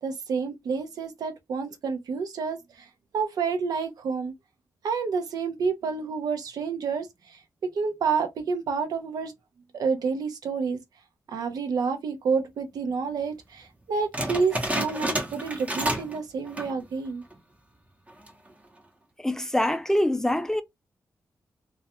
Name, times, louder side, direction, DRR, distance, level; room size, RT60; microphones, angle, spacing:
voice 1, 0.0-2.9 3.1-4.3 4.8-7.4 7.7-9.3 9.7-10.8 11.3-17.2, right 5 dB, 85° right, 0.6 m, -29 dB
sound 1, 14.1-16.2 16.5-16.8 17.3-17.4 18.1-18.5, right 1 dB, 20° right, 0.8 m, -30 dB
voice 2, 19.2-20.6, left 1 dB, 10° left, 0.3 m, -24 dB
2.3 x 2.2 x 2.8 m
wide cardioid pair, 105°, 6 cm